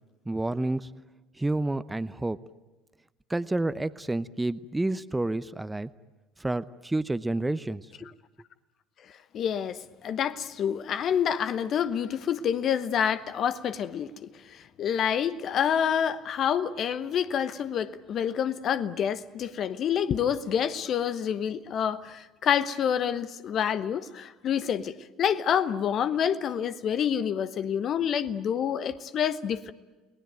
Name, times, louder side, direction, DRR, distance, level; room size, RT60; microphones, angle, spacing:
voice 1, 0.3-0.9 1.4-2.4 3.3-5.9 6.4-8.1, right 2 dB, 10° right, 0.8 m, -29 dB
voice 2, 9.3-29.7, left 8 dB, 45° left, 1.1 m, -28 dB
30.0 x 19.0 x 9.3 m
figure-of-eight pair, 60°, 0 cm